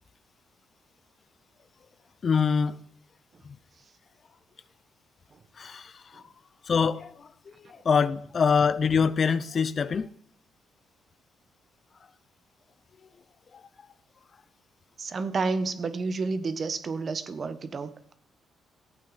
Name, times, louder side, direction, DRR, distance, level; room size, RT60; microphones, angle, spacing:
voice 1, 2.2-2.8 5.6-6.2 6.7-7.3 7.8-10.1, left 6 dB, 45° left, 0.5 m, -24 dB
voice 2, 15.0-18.1, right 4 dB, 45° right, 1.1 m, -30 dB
14.0 x 8.7 x 4.1 m
cardioid pair, 90°, 0 cm